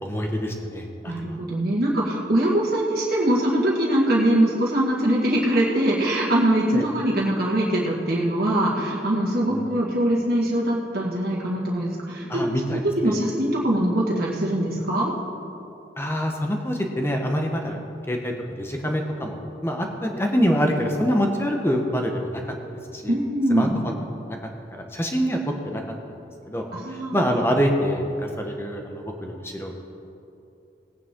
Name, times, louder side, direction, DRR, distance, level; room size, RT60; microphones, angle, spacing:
voice 1, 0.0-1.1 6.7-6.9 9.5-9.6 12.3-13.1 16.0-17.8 18.1-18.3 18.6-22.4 22.9-23.1 23.5-23.9 24.3-24.4 24.7-25.4 25.6-25.8 26.5-26.6 27.1-28.0 28.4-29.8, equal, 15° left, 2 dB, 1.1 m, -25 dB
voice 2, 1.1-15.1 23.1-23.9 26.7-27.2, right 1 dB, 55° right, -5 dB, 1.9 m, -22 dB
18.5 x 9.2 x 3.8 m, 2.8 s
head